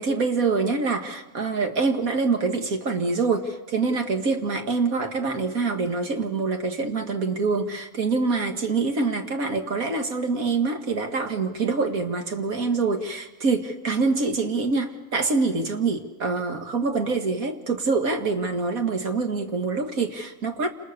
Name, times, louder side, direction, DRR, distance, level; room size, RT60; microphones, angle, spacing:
voice 1, 0.0-20.7, right 4 dB, 80° right, 5 dB, 2.5 m, -25 dB
29.0 x 28.0 x 6.8 m, 0.99 s
omnidirectional pair, 1.5 m